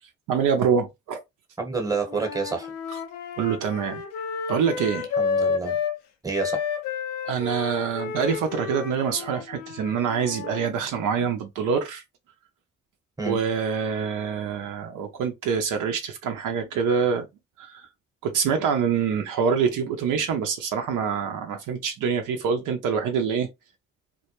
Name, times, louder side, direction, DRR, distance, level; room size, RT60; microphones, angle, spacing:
voice 1, 0.3-1.2 3.4-4.0 4.5-5.1 7.2-12.0 13.2-17.3 17.6-17.9 18.2-23.5, right 6 dB, 65° right, 0.6 m, -25 dB
voice 2, 1.6-2.7 5.2-5.8 6.2-6.6 13.2-13.4, right 4 dB, 10° right, 1.0 m, -28 dB
Wind instrument woodwind instrument, 2.1-6.0 6.3-10.7, left 6 dB, 90° left, 0.5 m, -31 dB
2.1 x 2.1 x 2.9 m
hypercardioid pair, 50°, 33 cm